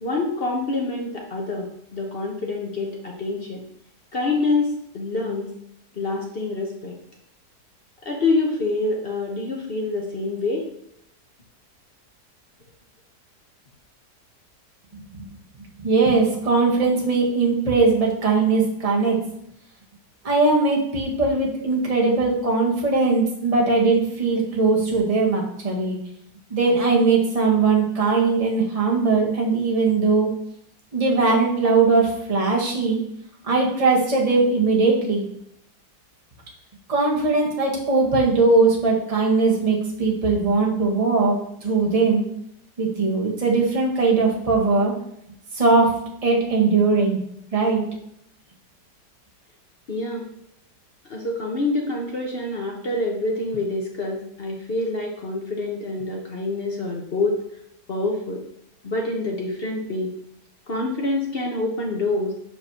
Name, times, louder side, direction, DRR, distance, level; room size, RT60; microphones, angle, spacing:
voice 1, 0.0-3.6 4.1-5.5 6.0-7.0 8.0-10.7 49.9-50.3 51.1-57.4 57.9-58.4 58.8-60.1 60.7-62.3, left 2 dB, 45° left, 0 dB, 0.9 m, -26 dB
voice 2, 15.8-19.2 20.2-26.0 26.5-30.3 30.9-33.0 33.4-35.3 36.9-41.3 41.6-42.2 42.8-44.9 45.5-45.9 46.2-47.2 47.5-47.8, right 3 dB, 25° right, -2 dB, 1.1 m, -20 dB
7.5 x 5.0 x 2.9 m, 0.75 s
omnidirectional pair, 1.8 m